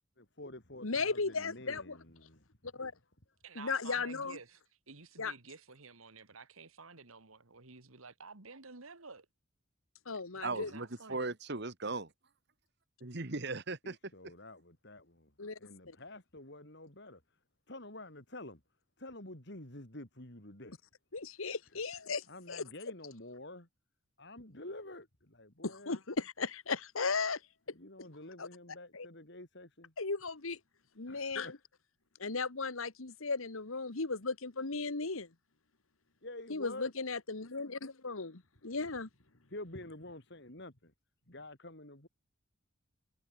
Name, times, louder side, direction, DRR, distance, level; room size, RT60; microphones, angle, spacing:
voice 1, 0.2-2.7 13.8-15.3 15.6-17.2 17.7-18.6 19.0-20.8 22.3-23.7 24.2-26.0 27.7-29.9 31.1-31.5 36.2-36.9 39.5-40.9 41.3-42.1, left 1 dB, 55° left, 4.4 m, -48 dB
voice 2, 0.8-2.0 2.7-2.9 3.5-4.4 5.2-5.3 10.0-10.7 15.4-15.6 15.9-16.0 21.1-22.6 25.6-27.4 28.4-28.5 28.9-29.1 30.0-30.6 31.0-31.5 32.2-35.3 36.5-39.1, left 4 dB, 80° left, 1.6 m, -36 dB
voice 3, 3.4-4.6 4.9-9.3 10.3-11.3, right 4 dB, 85° right, 2.3 m, -52 dB
voice 4, 10.4-12.1 13.0-14.0, right 3 dB, 55° right, 1.7 m, -37 dB
head